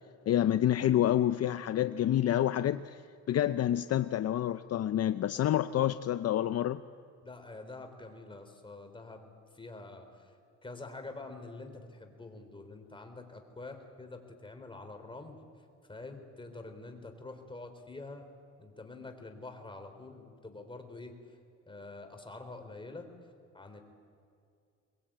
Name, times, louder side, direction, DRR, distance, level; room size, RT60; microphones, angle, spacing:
voice 1, 0.3-3.0 3.3-6.8, left 11 dB, 55° left, 12 dB, 0.6 m, -28 dB
voice 2, 7.2-9.3 9.5-10.3 10.6-15.4 15.9-18.3 18.6-21.2 21.7-23.1 23.5-23.8, left 2 dB, 15° left, 5 dB, 3.8 m, -46 dB
23.5 x 21.0 x 8.9 m, 2.3 s
cardioid pair, 90°, 30 cm